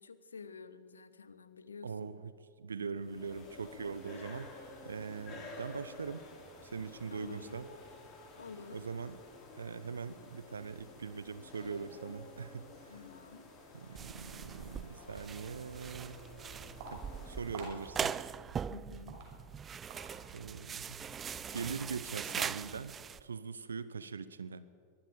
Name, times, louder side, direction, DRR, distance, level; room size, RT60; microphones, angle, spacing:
voice 1, 0.0-2.1 7.1-7.6 8.4-8.8 12.9-13.5 18.7-19.2, left 5 dB, 75° left, 14 dB, 1.2 m, -50 dB
voice 2, 1.8-2.3 2.6-4.5 4.8-6.3 6.6-7.7 8.7-9.2 9.5-12.9 13.7-16.2 16.9-18.2 20.3-21.0 21.5-24.7, right 5 dB, 70° right, 15 dB, 0.8 m, -42 dB
sound 1, 3.0-17.7, left 3 dB, 30° left, 6.8 m, -52 dB
sound 2, 14.0-23.2, right 7 dB, 20° right, 0.5 m, -41 dB
Walk footsteps, 15.6-22.0, right 3 dB, 50° right, 5.9 m, -52 dB
23.5 x 23.0 x 5.1 m, 2.1 s
figure-of-eight pair, 90°, 0 cm